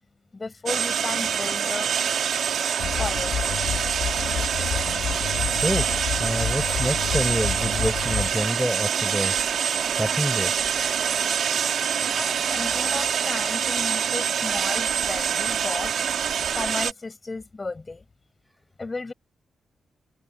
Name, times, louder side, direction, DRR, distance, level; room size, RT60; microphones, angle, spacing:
voice 1, 0.3-1.9 3.0-3.7 12.1-16.1 16.5-18.0 18.8-19.1, left 3 dB, 25° left, 8.0 m, -34 dB
sound 1, 0.7-16.9, right 7 dB, 65° right, 2.2 m, -25 dB
sound 2, 2.8-8.6, left 9 dB, 80° left, 1.0 m, -30 dB
voice 2, 5.5-9.3 9.9-10.5, equal, ahead, 6.9 m, -27 dB
cardioid pair, 125°, 0 cm